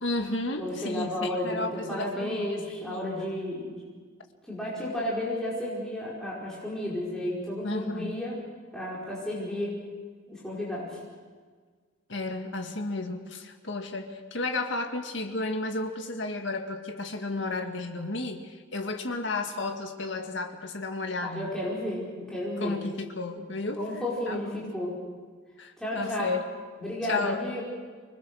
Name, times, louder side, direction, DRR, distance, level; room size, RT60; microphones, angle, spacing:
voice 1, 0.0-2.5 2.9-3.3 7.6-8.2 12.1-21.5 22.6-23.8 24.3-24.7 25.6-26.5 27.1-27.5, left 2 dB, 65° left, 4 dB, 2.0 m, -33 dB
voice 2, 0.6-3.8 4.5-8.3 8.7-9.8 10.3-11.0 21.2-22.8 23.4-23.5 23.8-24.9 25.8-26.2 26.8-27.6, left 1 dB, 5° left, -7 dB, 5.1 m, -32 dB
25.0 x 20.5 x 6.3 m, 1.5 s
head